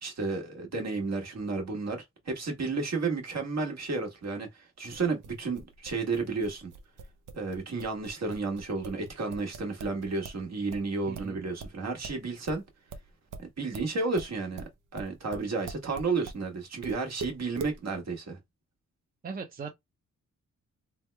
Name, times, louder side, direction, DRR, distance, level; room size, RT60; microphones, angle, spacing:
voice 1, 0.0-6.7 7.3-12.6 13.4-14.6 14.9-18.4, right 3 dB, 55° right, 1.4 m, -32 dB
sound 1, 4.9-10.4 10.7-16.4 16.8-17.8, right 4 dB, 75° right, 0.7 m, -42 dB
voice 2, 11.1-11.4 19.2-19.7, right 5 dB, 30° right, 0.6 m, -39 dB
3.4 x 2.2 x 3.3 m
cardioid pair, 100°, 31 cm